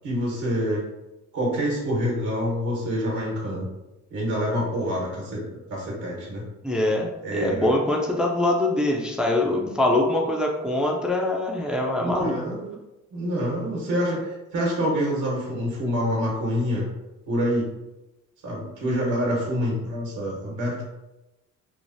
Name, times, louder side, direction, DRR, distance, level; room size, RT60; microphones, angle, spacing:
voice 1, 0.0-0.9 1.3-3.7 4.1-5.4 5.7-6.4 7.2-7.7 12.0-12.8 13.1-16.9 17.3-17.7 18.4-20.8, equal, 80° right, -4 dB, 1.1 m, -26 dB
voice 2, 6.6-12.4, left 1 dB, 5° right, -1 dB, 0.4 m, -23 dB
3.1 x 2.0 x 2.6 m, 0.99 s
cardioid pair, 90°, 30 cm